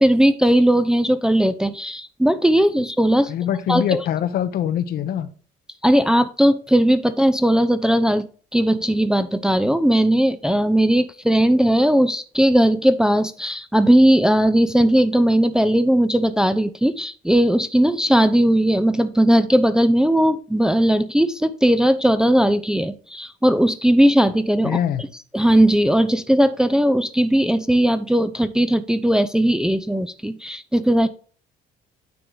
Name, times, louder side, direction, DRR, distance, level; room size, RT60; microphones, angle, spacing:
voice 1, 0.0-3.3 3.7-4.0 5.8-8.3 8.5-24.8 25.3-31.1, right 1 dB, 5° right, 10 dB, 0.5 m, -18 dB
voice 2, 3.3-5.3 24.6-25.0, left 10 dB, 65° left, 11 dB, 0.9 m, -23 dB
9.4 x 3.8 x 4.6 m, 0.40 s
cardioid pair, 110°, 17 cm